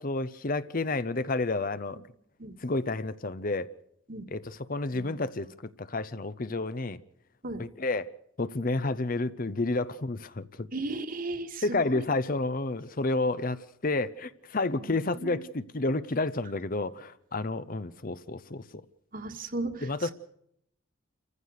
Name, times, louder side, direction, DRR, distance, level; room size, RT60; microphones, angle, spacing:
voice 1, 0.0-2.0 2.6-3.7 4.3-7.0 7.6-8.1 8.4-10.7 11.6-18.8 19.8-20.1, left 2 dB, 45° left, 0.7 m, -30 dB
voice 2, 10.7-11.6 11.9-12.0 14.8-15.4 19.1-19.9, right 2 dB, 45° right, 1.7 m, -35 dB
28.5 x 15.0 x 6.6 m
head